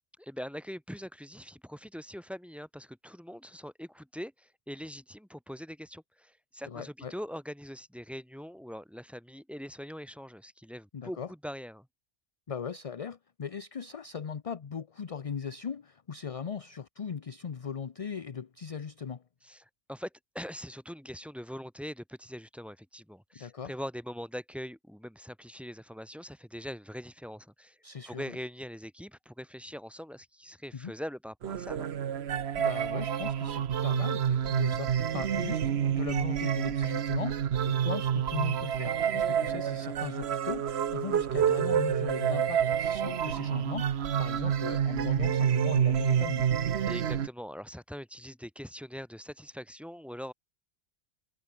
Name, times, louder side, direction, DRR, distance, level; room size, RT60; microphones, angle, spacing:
voice 1, 0.2-11.9 19.4-27.8 28.1-31.9 46.9-50.3, equal, ahead, 2.0 m, -42 dB
voice 2, 6.7-7.1 10.9-11.3 12.5-19.2 23.3-23.7 27.8-28.4 30.7-30.9 32.6-46.5, left 6 dB, 40° left, 0.7 m, -39 dB
sound 1, 31.4-47.3, right 9 dB, 80° right, 1.1 m, -28 dB
omnidirectional pair, 1.1 m